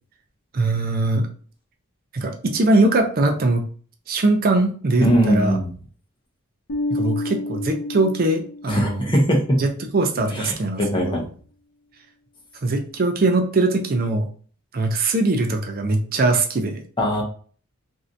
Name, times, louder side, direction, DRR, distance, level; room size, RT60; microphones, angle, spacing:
voice 1, 0.5-1.3 2.1-3.7 4.1-5.6 6.9-9.1 9.6-11.2 12.6-14.3 14.7-16.8, right 2 dB, 40° right, 4 dB, 0.4 m, -21 dB
voice 2, 5.0-5.7 8.7-9.4 10.3-11.2 17.0-17.2, equal, 20° left, -1 dB, 0.8 m, -20 dB
Bass guitar, 6.7-9.1, left 2 dB, 85° left, 0.6 m, -29 dB
3.2 x 2.6 x 2.6 m, 0.43 s
head